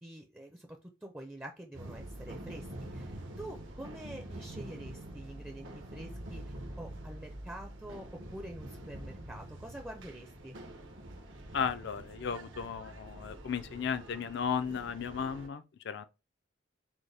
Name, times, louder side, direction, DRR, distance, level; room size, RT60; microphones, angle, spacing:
voice 1, 0.0-10.6, right 1 dB, 10° right, 0.5 m, -47 dB
sound 1, 1.7-15.5, right 1 dB, 70° right, 0.9 m, -46 dB
voice 2, 11.5-16.1, left 6 dB, 60° left, 0.4 m, -35 dB
6.2 x 2.2 x 3.3 m
head